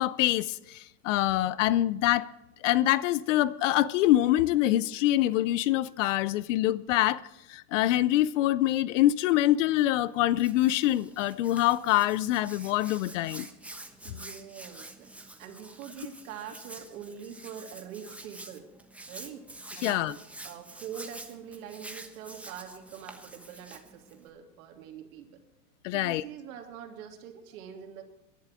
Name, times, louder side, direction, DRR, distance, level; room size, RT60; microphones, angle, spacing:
voice 1, 0.0-2.3 2.6-7.2 7.5-13.5 19.8-20.1 25.8-26.2, left 14 dB, 55° left, 0.6 m, -25 dB
Hands, 9.6-24.3, right 2 dB, 5° right, 1.1 m, -48 dB
voice 2, 14.0-15.1 15.4-18.7 19.1-19.5 19.7-20.2 20.4-25.4 25.9-28.0, right 8 dB, 60° right, 3.0 m, -44 dB
22.5 x 11.5 x 3.6 m
hypercardioid pair, 125°, 47 cm